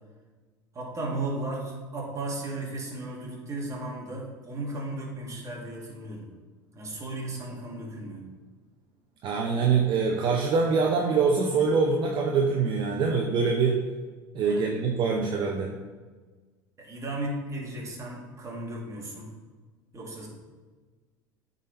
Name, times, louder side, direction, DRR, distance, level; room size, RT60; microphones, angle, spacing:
voice 1, 0.7-6.3 6.7-8.3 14.4-14.8 16.8-19.3 19.9-20.3, right 2 dB, 30° right, -2 dB, 2.1 m, -35 dB
voice 2, 9.2-13.8 14.3-15.7, right 5 dB, 45° right, 1 dB, 0.8 m, -24 dB
8.7 x 4.1 x 4.2 m, 1.4 s
hypercardioid pair, 80°, 11 cm